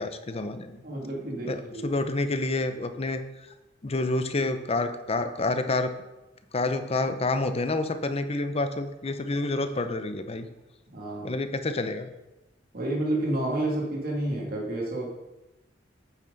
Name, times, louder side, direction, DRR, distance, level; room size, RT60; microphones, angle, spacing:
voice 1, 0.0-0.8 1.4-3.2 3.8-5.9 6.5-10.5 11.2-12.1, left 2 dB, 35° left, 9 dB, 0.7 m, -28 dB
voice 2, 0.8-1.5 1.7-1.9 10.9-11.4 12.7-15.1, right 1 dB, 55° right, -3 dB, 2.6 m, -29 dB
9.1 x 8.7 x 4.0 m, 0.99 s
head